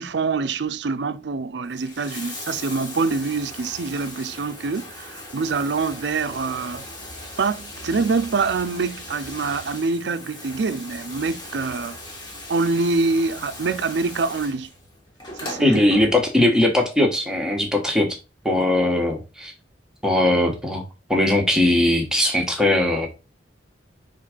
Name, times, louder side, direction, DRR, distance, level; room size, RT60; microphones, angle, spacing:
voice 1, 0.0-6.8 7.4-12.0 12.5-14.7 15.4-15.8, right 4 dB, 65° right, 0.5 m, -25 dB
Bathtub (filling or washing), 1.7-16.6 17.7-17.8, left 1 dB, 25° left, 1.6 m, -38 dB
voice 2, 15.6-18.1 18.4-19.5 20.0-20.8 21.1-23.1, left 1 dB, 5° right, 1.2 m, -19 dB
5.6 x 3.7 x 5.0 m
head